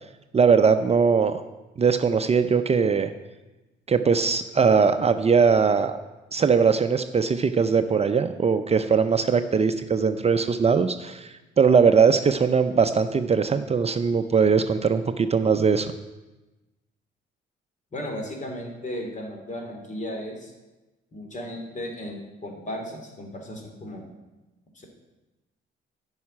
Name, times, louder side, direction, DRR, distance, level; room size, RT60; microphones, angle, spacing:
voice 1, 0.3-1.4 1.8-3.1 3.9-6.0 6.3-15.9, right 5 dB, 30° right, 9 dB, 0.6 m, -20 dB
voice 2, 17.9-20.5 21.1-24.1 24.7-24.9, left 1 dB, 40° left, 2 dB, 2.9 m, -35 dB
10.5 x 5.7 x 8.7 m, 1.1 s
cardioid pair, 90°, 20 cm